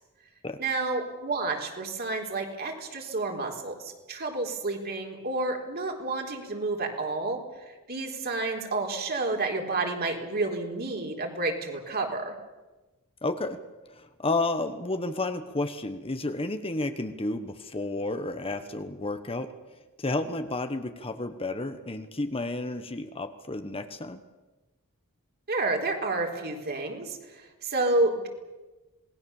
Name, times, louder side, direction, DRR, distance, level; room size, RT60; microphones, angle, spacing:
voice 1, 0.6-7.4 7.7-12.3 25.5-28.3, right 2 dB, 45° right, 2 dB, 4.1 m, -30 dB
voice 2, 13.2-13.6 13.9-19.6 20.0-24.2, left 2 dB, 25° left, 9 dB, 1.2 m, -31 dB
27.0 x 20.0 x 7.2 m, 1.2 s
head